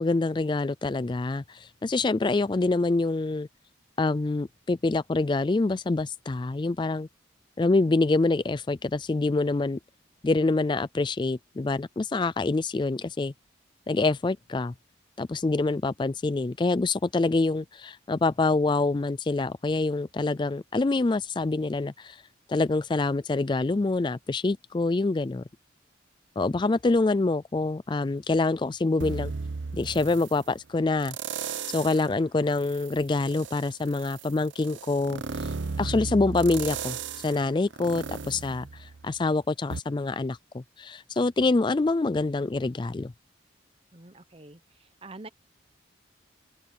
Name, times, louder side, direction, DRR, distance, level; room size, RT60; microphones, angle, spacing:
voice 1, 0.0-3.5 4.0-7.1 7.6-9.8 10.2-13.3 13.9-14.7 15.2-22.2 22.5-25.4 26.4-29.3 29.7-31.1 31.7-37.0 37.2-43.1, left 3 dB, 25° left, 0.3 m, -26 dB
sound 1, 29.0-30.4 31.0-32.1 32.5-39.2 39.7-39.8, right 5 dB, 75° right, 0.8 m, -35 dB
voice 2, 43.9-45.3, right 2 dB, 30° right, 0.9 m, -46 dB
open air
head